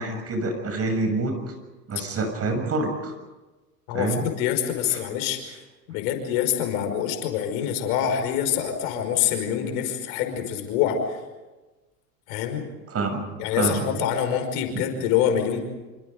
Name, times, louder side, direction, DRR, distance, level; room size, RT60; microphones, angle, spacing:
voice 1, 0.0-1.4 1.9-3.1 3.9-4.2 4.9-5.0 12.9-13.2 13.5-13.8, right 3 dB, 30° right, 5 dB, 6.9 m, -26 dB
voice 2, 3.9-5.6 5.9-11.2 12.3-12.6 13.4-15.6, left 9 dB, 60° left, 6 dB, 5.5 m, -25 dB
27.5 x 26.0 x 5.2 m, 1.1 s
hypercardioid pair, 100°, 48 cm